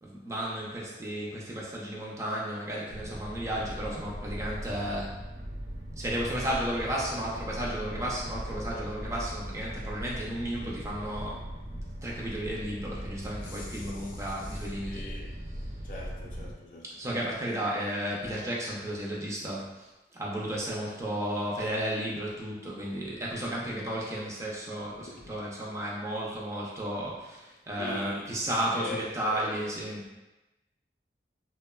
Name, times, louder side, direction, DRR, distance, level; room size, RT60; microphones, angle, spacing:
voice 1, 0.0-5.2 6.0-11.5 12.0-15.0 15.6-15.7 16.8-19.9 20.2-30.2, right 1 dB, 15° right, 0.3 m, -33 dB
sound 1, 2.9-16.5, equal, 75° right, 0.5 m, -39 dB
voice 2, 13.4-15.4 15.8-17.1 25.2-25.3 27.8-28.3 28.7-29.6, left 3 dB, 50° left, 0.4 m, -43 dB
2.9 x 2.0 x 2.2 m
head